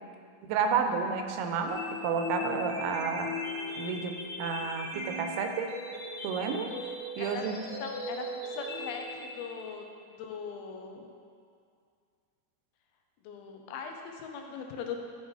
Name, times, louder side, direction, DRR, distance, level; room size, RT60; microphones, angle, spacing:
voice 1, 0.4-3.3 3.8-5.7 6.2-6.7 7.2-7.6, right 6 dB, 90° right, 5 dB, 2.5 m, -31 dB
sound 1, 1.7-9.7, left 2 dB, 45° left, 1.7 m, -38 dB
voice 2, 7.2-9.8 10.2-11.0 13.2-15.0, left 6 dB, 85° left, 3 dB, 2.7 m, -40 dB
11.5 x 4.0 x 4.8 m, 2.3 s
omnidirectional pair, 4.4 m